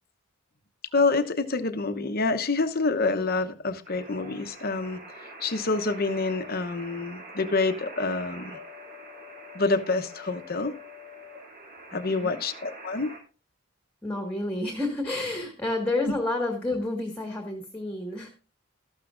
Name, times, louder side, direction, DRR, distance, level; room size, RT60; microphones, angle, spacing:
voice 1, 0.9-5.0 5.4-8.6 9.5-10.8 11.9-13.1 16.1-16.2, left 3 dB, 45° left, 0.9 m, -27 dB
sound 1, 3.8-13.2, equal, 45° right, 2.6 m, -44 dB
voice 2, 14.0-18.3, left 2 dB, 5° left, 1.7 m, -30 dB
13.5 x 12.0 x 2.5 m
head